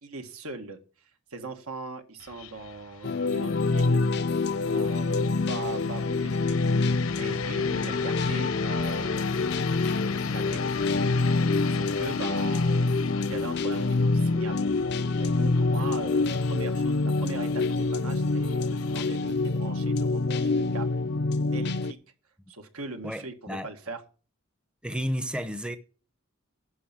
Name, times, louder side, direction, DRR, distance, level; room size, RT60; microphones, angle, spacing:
voice 1, 0.0-0.8 1.3-4.0 4.6-6.6 7.2-9.7 10.1-10.7 11.7-12.8 13.3-14.7 15.2-20.9 21.5-22.0 22.5-24.0, right 3 dB, 85° right, 1.6 m, -40 dB
sound 1, 2.2-21.2, left 6 dB, 80° left, 0.8 m, -40 dB
sound 2, 3.0-21.9, left 3 dB, 50° left, 0.5 m, -26 dB
voice 2, 23.0-23.7 24.8-25.8, equal, 5° right, 0.6 m, -32 dB
11.5 x 5.5 x 7.3 m
head